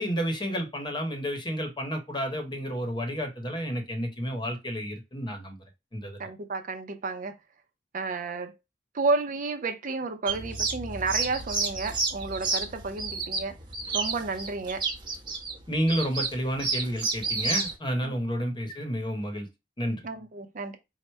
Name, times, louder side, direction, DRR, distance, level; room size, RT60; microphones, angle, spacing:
voice 1, 0.0-5.6 5.9-6.2 15.7-19.5 19.8-20.1, equal, 25° left, 1.0 m, -30 dB
voice 2, 6.2-7.3 7.9-8.5 8.9-13.6 13.9-14.8 18.0-18.1 20.0-20.8, right 3 dB, 50° right, 0.5 m, -31 dB
sound 1, 10.3-17.7, right 4 dB, 30° right, 0.9 m, -31 dB
4.6 x 2.1 x 4.4 m
head